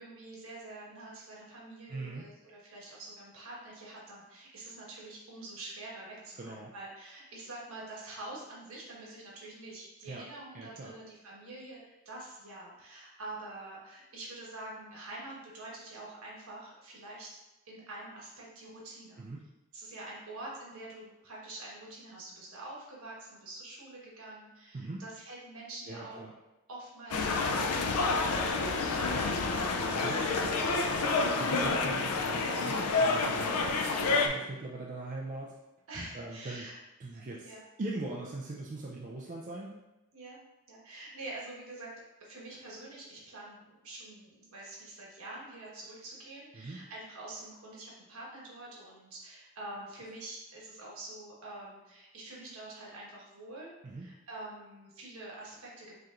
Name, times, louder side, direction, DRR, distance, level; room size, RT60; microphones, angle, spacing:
voice 1, 0.0-17.3 17.6-19.2 19.7-26.2 26.7-28.5 30.0-30.9 35.9-36.8 37.1-37.6 40.1-40.4 40.7-41.9 42.2-55.9, right 2 dB, 75° right, -4 dB, 1.3 m, -46 dB
voice 2, 1.9-2.3 6.4-6.7 10.1-10.2 10.5-10.9 19.2-19.4 24.7-25.0 25.9-26.3 29.8-30.3 31.4-33.6 34.0-35.5 36.1-36.6 37.0-37.5 37.8-39.8 46.5-46.8 53.8-54.1, right 2 dB, 35° right, -3 dB, 0.3 m, -40 dB
sound 1, 27.1-34.3, left 3 dB, 85° left, 0.4 m, -29 dB
5.0 x 2.9 x 2.5 m, 0.98 s
head